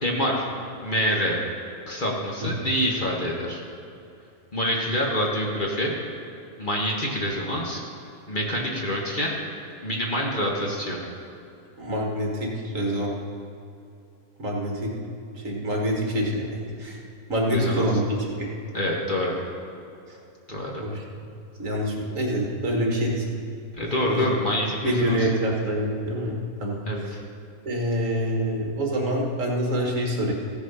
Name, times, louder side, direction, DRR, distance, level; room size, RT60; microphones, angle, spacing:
voice 1, 0.0-0.5 0.8-1.4 1.9-3.6 4.5-5.9 6.6-7.8 8.3-9.4 9.8-11.0 17.5-17.8 18.7-19.4 20.5-20.8 23.8-25.3 26.9-27.2, equal, 35° left, -2 dB, 1.4 m, -26 dB
voice 2, 11.8-13.1 14.4-14.9 15.4-17.0 17.3-18.5 20.8-21.0 21.6-23.4 23.8-24.3 24.8-27.2 27.7-30.3, equal, 60° right, -1 dB, 1.8 m, -26 dB
15.0 x 6.9 x 5.5 m, 2.7 s
omnidirectional pair, 1.6 m